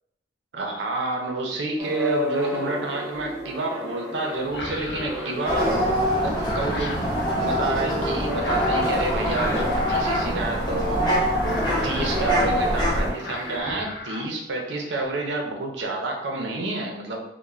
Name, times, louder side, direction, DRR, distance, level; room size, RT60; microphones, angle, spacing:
voice 1, 0.5-5.8 6.2-7.0 7.4-11.0 11.4-17.2, right 2 dB, 90° right, 1 dB, 0.5 m, -29 dB
sound 1, 1.8-6.2 6.6-7.0 7.7-10.6 11.6-13.6, equal, 15° right, 0.4 m, -32 dB
sound 2, 3.1-3.5 4.4-5.9 6.2-7.5 8.4-8.9 9.2-11.0 11.3-12.3 12.7-12.9 13.2-14.2 14.6-15.0, left 2 dB, 75° left, 0.5 m, -36 dB
sound 3, 5.4-13.1, equal, 25° left, 0.6 m, -24 dB
2.4 x 2.1 x 3.0 m, 0.82 s
head